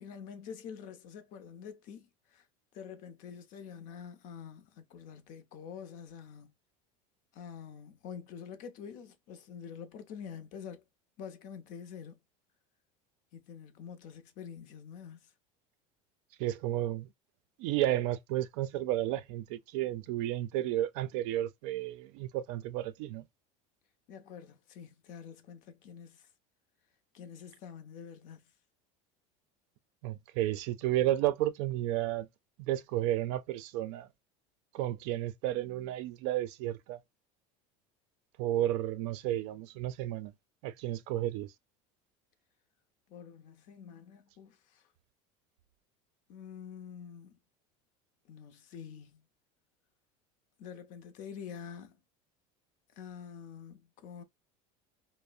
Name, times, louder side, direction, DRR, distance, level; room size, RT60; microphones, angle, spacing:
voice 1, 0.0-2.5 2.7-6.5 7.3-10.8 11.2-12.2 13.3-15.3 24.1-26.3 27.1-28.4 43.1-44.9 46.3-47.4 48.3-49.2 50.6-52.0 53.0-54.2, left 7 dB, 55° left, 0.6 m, -47 dB
voice 2, 16.4-17.1 17.6-23.2 30.0-32.3 32.6-34.1 34.7-37.0 38.4-40.3 40.6-41.5, right 13 dB, 70° right, 0.4 m, -32 dB
2.6 x 2.0 x 2.4 m
supercardioid pair, 140°, 16 cm